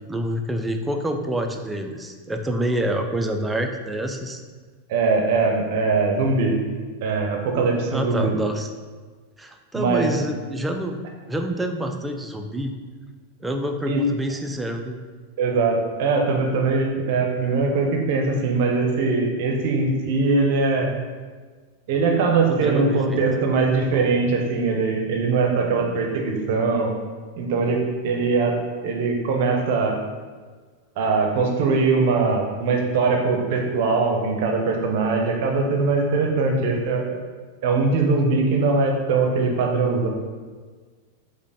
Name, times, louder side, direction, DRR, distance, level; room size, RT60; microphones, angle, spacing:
voice 1, 0.1-4.4 7.9-8.7 9.4-11.0 11.3-12.7 13.4-15.0 22.5-23.2, right 1 dB, 10° right, 4 dB, 0.4 m, -27 dB
voice 2, 4.9-6.6 7.0-8.4 9.7-10.1 13.9-14.0 15.4-20.9 21.9-26.9 27.4-28.6 28.8-30.0 31.0-37.2 37.6-40.1, right 4 dB, 50° right, 2 dB, 0.6 m, -21 dB
5.0 x 2.1 x 3.4 m, 1.5 s
figure-of-eight pair, 90°, 0 cm